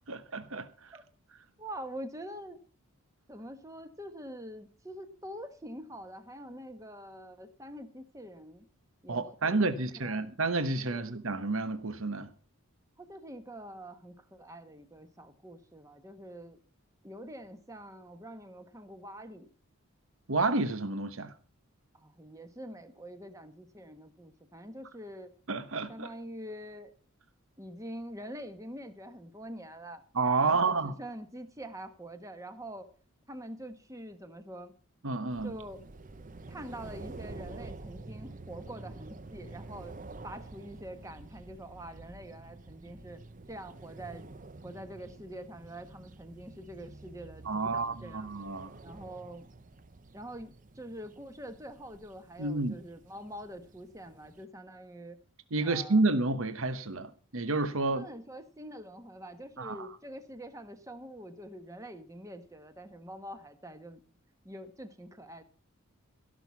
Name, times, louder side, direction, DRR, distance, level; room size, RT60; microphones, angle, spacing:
voice 1, 0.1-0.9 9.1-12.3 20.3-21.3 25.5-26.1 30.1-30.9 35.0-35.6 47.4-48.7 52.4-52.8 55.5-58.0 59.6-59.9, right 3 dB, 65° right, 1.0 m, -30 dB
voice 2, 1.6-2.6 3.3-8.7 9.0-10.3 10.9-11.0 13.0-16.6 17.0-19.5 21.9-25.3 25.9-26.9 27.6-30.0 30.4-32.9 33.3-34.7 35.4-35.8 36.5-39.9 40.2-43.2 43.5-44.3 44.6-48.3 48.8-49.5 50.1-55.2 55.6-56.0 57.8-64.0 64.4-65.4, equal, 15° right, 1.3 m, -45 dB
sound 1, 35.3-54.5, right 2 dB, 35° right, 0.7 m, -49 dB
16.5 x 6.4 x 7.0 m
head